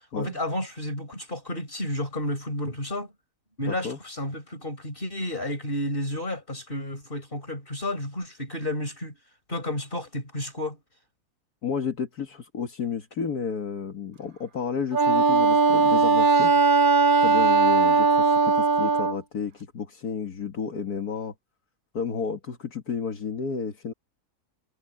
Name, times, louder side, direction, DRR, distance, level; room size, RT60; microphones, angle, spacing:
voice 1, 0.1-3.1 3.6-9.2 9.5-10.8, left 1 dB, 35° left, 5.8 m, -31 dB
voice 2, 3.7-4.0 11.6-16.5 17.2-21.3 21.9-23.9, left 6 dB, 70° left, 2.2 m, -31 dB
Wind instrument woodwind instrument, 14.9-19.2, right 4 dB, 45° right, 0.7 m, -19 dB
omnidirectional pair, 1.7 m